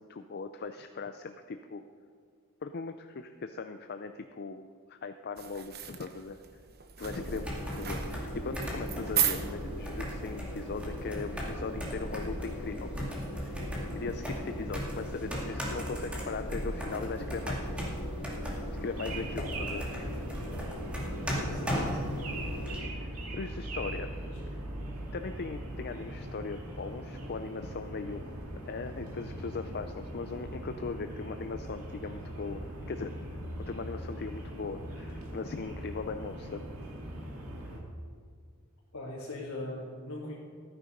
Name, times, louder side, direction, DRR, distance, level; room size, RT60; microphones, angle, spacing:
voice 1, 0.0-1.8 2.6-6.4 7.0-12.9 13.3-13.6 13.9-17.8 18.7-20.2 22.9-24.1 25.1-28.3 28.6-33.1 33.6-36.7, left 4 dB, 45° left, 8 dB, 0.5 m, -39 dB
sound 1, 5.4-11.0, right 9 dB, 45° right, 1.0 m, -36 dB
sound 2, 7.0-22.8, equal, 5° right, 2.3 m, -36 dB
sound 3, 18.9-37.8, right 1 dB, 75° right, 2.4 m, -40 dB
voice 2, 21.4-22.1 24.3-24.4 38.9-40.3, left 1 dB, 65° left, -8 dB, 2.9 m, -40 dB
15.0 x 9.6 x 5.2 m, 2.1 s
head